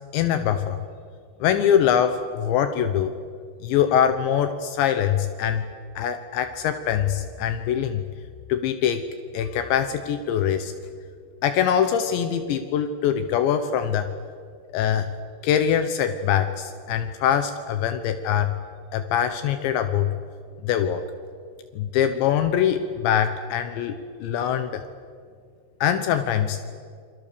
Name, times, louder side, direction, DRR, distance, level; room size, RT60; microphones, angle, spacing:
voice 1, 0.1-0.8 1.4-3.1 3.6-5.7 6.0-8.0 8.5-9.1 9.3-10.7 11.4-14.1 14.7-15.1 15.4-18.6 18.9-20.1 20.6-21.0 21.7-24.8 25.8-26.6, left 9 dB, 75° left, 8 dB, 3.2 m, -23 dB
28.0 x 25.5 x 6.9 m, 2.1 s
omnidirectional pair, 5.4 m